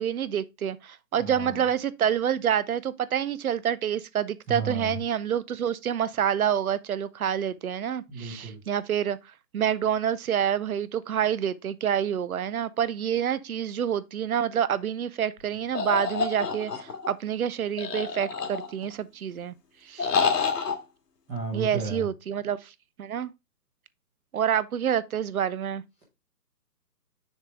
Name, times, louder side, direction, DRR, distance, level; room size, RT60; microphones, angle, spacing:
voice 1, 0.0-9.2 9.5-19.5 19.8-20.1 21.5-22.7 23.0-23.3 24.3-25.8, right 9 dB, 60° right, 0.6 m, -27 dB
voice 2, 1.2-1.7 4.5-5.0 8.1-8.6 21.3-22.1, right 4 dB, 5° right, 0.8 m, -33 dB
sound 1, 15.7-17.1 17.8-18.9 20.0-20.7, left 5 dB, 70° left, 1.8 m, -27 dB
6.5 x 4.7 x 3.5 m
hypercardioid pair, 150°, 50 cm